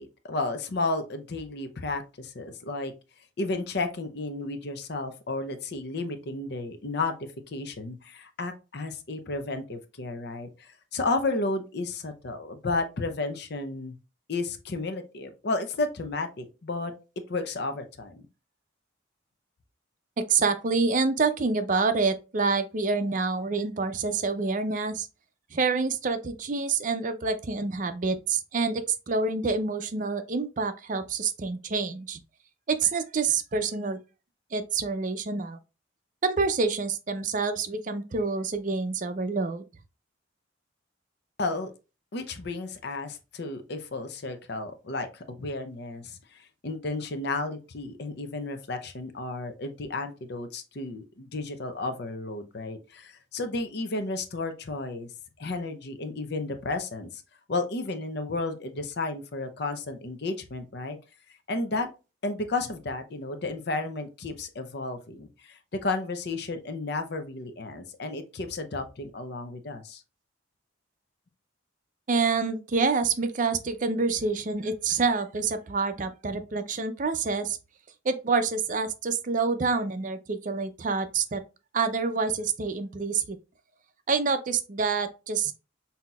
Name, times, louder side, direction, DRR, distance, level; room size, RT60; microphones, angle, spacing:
voice 1, 0.0-2.9 3.4-7.1 7.5-14.0 14.3-16.9 17.3-18.2 41.4-41.7 42.1-55.1 55.4-57.2 57.5-61.0 61.5-61.9 62.2-70.0, left 3 dB, 55° left, 0.6 m, -32 dB
voice 2, 20.2-25.1 25.5-32.2 32.7-34.0 34.5-35.6 36.2-39.6 72.1-77.6 78.0-81.4 81.7-83.4 84.1-85.5, right 4 dB, 40° right, 0.5 m, -27 dB
5.7 x 2.8 x 2.3 m
head